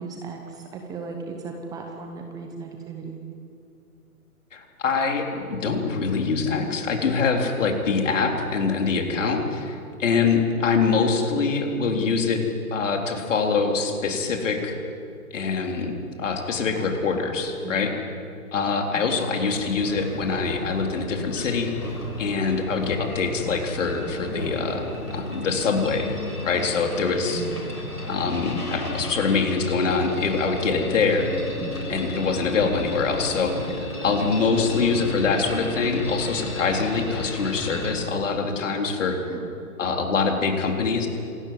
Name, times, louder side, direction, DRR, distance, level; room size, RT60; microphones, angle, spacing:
voice 1, 0.0-3.2 17.6-17.8 18.9-19.1 27.3-27.7 31.6-31.8 39.3-39.5, right 5 dB, 10° right, 3 dB, 0.9 m, -36 dB
voice 2, 4.5-12.4 12.7-14.7 15.3-17.9 18.5-21.8 22.2-26.1 26.4-27.5 28.1-31.3 31.9-39.2 39.8-41.1, left 4 dB, 55° left, 2 dB, 3.9 m, -24 dB
sound 1, 19.5-37.9, left 1 dB, 90° left, 6.7 m, -33 dB
26.5 x 13.5 x 9.7 m, 2.6 s
figure-of-eight pair, 140°, 45 cm